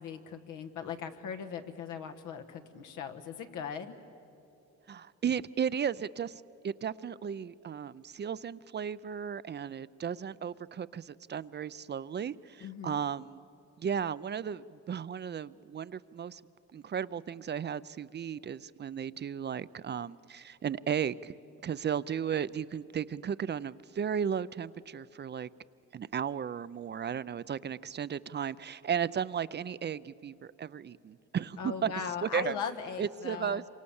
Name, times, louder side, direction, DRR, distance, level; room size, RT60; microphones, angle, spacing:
voice 1, 0.0-3.9 12.6-13.0 31.6-33.6, left 7 dB, 90° left, 6 dB, 1.5 m, -39 dB
voice 2, 4.9-13.4 13.8-16.4 16.7-21.3 21.6-25.5 25.9-31.9 32.2-32.6 33.0-33.7, right 8 dB, 35° right, 17 dB, 0.5 m, -35 dB
27.0 x 24.5 x 7.1 m, 2.8 s
cardioid pair, 90°, 30 cm